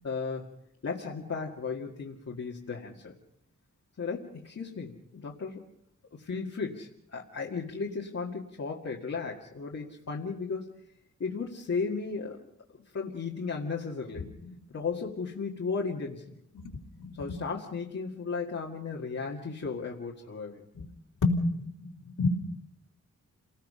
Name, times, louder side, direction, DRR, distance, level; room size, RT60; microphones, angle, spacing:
voice 1, 0.0-0.5 0.8-3.2 4.0-5.6 6.1-10.8 11.2-12.5 12.7-14.3 14.7-16.4 17.2-20.6, left 5 dB, 55° left, -2 dB, 2.0 m, -35 dB
voice 2, 17.0-17.4 20.8-20.9 21.2-22.4, left 2 dB, 75° left, -1 dB, 3.5 m, -29 dB
29.5 x 19.0 x 5.6 m, 0.73 s
wide cardioid pair, 180°, 31 cm